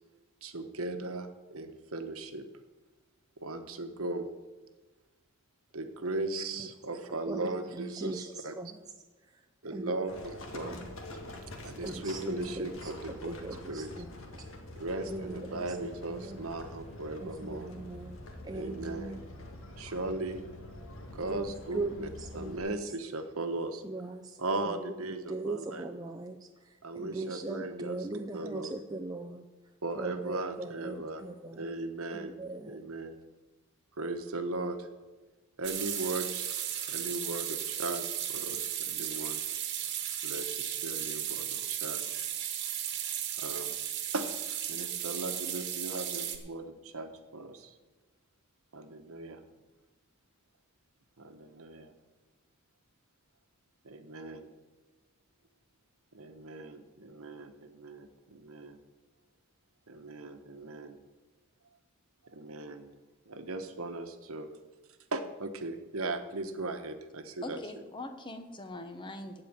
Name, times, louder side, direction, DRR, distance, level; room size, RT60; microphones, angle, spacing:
voice 1, 0.4-2.4 3.4-4.3 5.7-8.5 9.6-10.8 11.6-14.0 14.8-17.7 18.5-19.2 19.8-20.4 21.1-22.1 22.3-23.8 24.4-25.9 26.8-28.8 29.8-31.3 31.6-32.4 32.7-33.2 34.0-34.9 35.6-36.5 36.9-39.4 40.2-42.2 43.4-43.7 44.1-44.3 44.7-47.7 48.7-49.4 51.2-51.9 53.8-54.5 56.1-58.8 59.9-61.0 62.3-62.9 63.3-64.5 65.1-67.6, right 2 dB, 70° right, 8 dB, 1.2 m, -38 dB
voice 2, 7.8-8.7 9.7-10.0 10.6-10.8 11.8-12.7 13.3-14.1 15.1-15.6 16.2-16.4 17.4-18.2 18.4-19.2 21.3-22.7 23.8-24.2 24.6-24.8 25.3-26.4 26.9-29.4 30.0-31.7 32.1-32.8, right 2 dB, 15° right, 3 dB, 0.5 m, -39 dB
Livestock farm animals working animals, 10.1-22.6, left 1 dB, 60° left, 1.9 m, -46 dB
sound 1, 35.6-46.4, right 10 dB, 50° right, 1.3 m, -35 dB
voice 3, 67.4-69.4, left 2 dB, 20° left, 7 dB, 0.8 m, -42 dB
15.0 x 5.0 x 8.9 m, 1.2 s
head